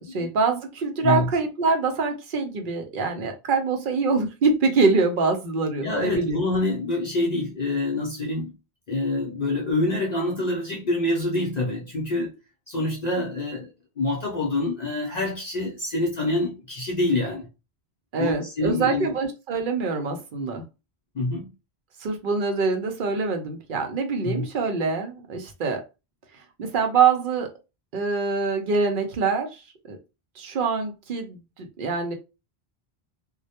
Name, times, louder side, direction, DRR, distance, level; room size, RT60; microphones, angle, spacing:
voice 1, 0.0-6.4 18.1-20.6 22.0-25.8 26.6-27.5 27.9-29.6 29.9-30.0 30.4-32.1, right 4 dB, 60° right, 0.7 m, -24 dB
voice 2, 5.8-8.5 8.9-12.3 12.7-13.7 14.0-17.5 18.2-19.1 21.1-21.5 24.2-24.5, left 2 dB, 50° left, 0.5 m, -26 dB
2.2 x 2.1 x 2.7 m
omnidirectional pair, 1.1 m